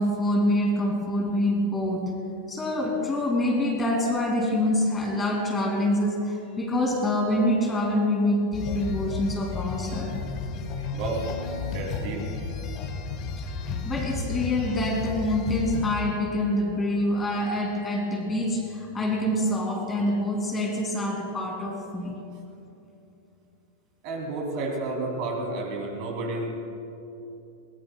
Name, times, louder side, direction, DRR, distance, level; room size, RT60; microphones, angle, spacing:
voice 1, 0.0-2.1 2.5-10.1 13.4-13.5 13.8-22.1, left 1 dB, 15° left, 1 dB, 2.6 m, -26 dB
sound 1, 8.5-15.9, left 4 dB, 35° left, 1.4 m, -33 dB
voice 2, 10.9-11.2 11.7-12.2 24.0-26.4, right 2 dB, 45° right, 0 dB, 2.9 m, -31 dB
22.0 x 19.5 x 2.3 m, 2.8 s
figure-of-eight pair, 90°, 0 cm